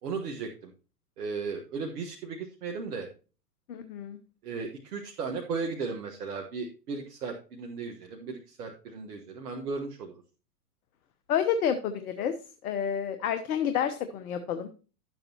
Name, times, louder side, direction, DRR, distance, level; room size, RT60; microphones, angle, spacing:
voice 1, 0.0-0.7 1.2-3.1 4.4-10.1, right 4 dB, 70° right, 2 dB, 1.5 m, -36 dB
voice 2, 3.7-4.2 11.3-12.3 12.6-14.7, left 8 dB, 65° left, 9 dB, 1.1 m, -29 dB
12.0 x 7.9 x 2.9 m, 0.35 s
hypercardioid pair, 105°, 47 cm